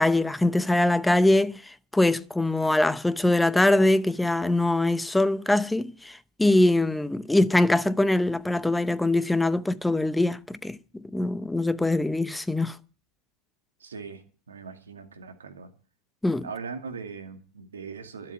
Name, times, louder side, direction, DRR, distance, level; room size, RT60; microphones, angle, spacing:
voice 1, 0.0-1.6 1.9-12.8 16.2-16.5, left 2 dB, 5° left, 0.7 m, -23 dB
voice 2, 13.8-15.7 16.4-18.3, right 5 dB, 85° right, 2.3 m, -40 dB
12.5 x 7.5 x 9.3 m
hypercardioid pair, 95°, 0 cm